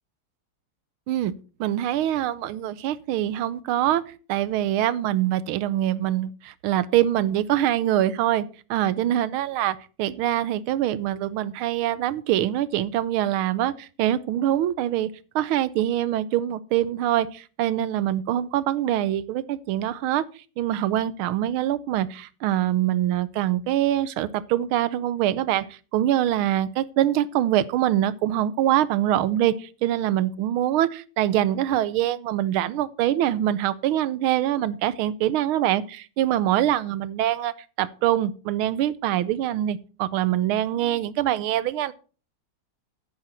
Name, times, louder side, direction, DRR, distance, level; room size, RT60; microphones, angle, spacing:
voice 1, 1.6-4.0 4.3-15.1 15.3-20.2 20.6-41.9, right 12 dB, 75° right, 1.5 m, -24 dB
9.9 x 9.7 x 4.4 m
omnidirectional pair, 2.4 m